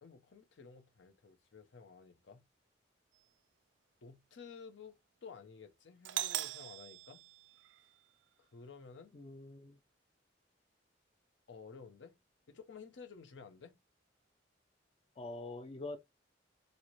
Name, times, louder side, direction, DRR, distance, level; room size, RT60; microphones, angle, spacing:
voice 1, 0.0-2.4 4.0-7.2 8.4-9.1 11.5-12.1 12.5-13.7, left 5 dB, 80° left, 0.6 m, -53 dB
Doorbell, 6.1-8.0, right 14 dB, 80° right, 0.3 m, -41 dB
voice 2, 9.1-9.8 15.2-16.0, left 2 dB, 35° left, 0.4 m, -44 dB
4.0 x 2.0 x 3.0 m
head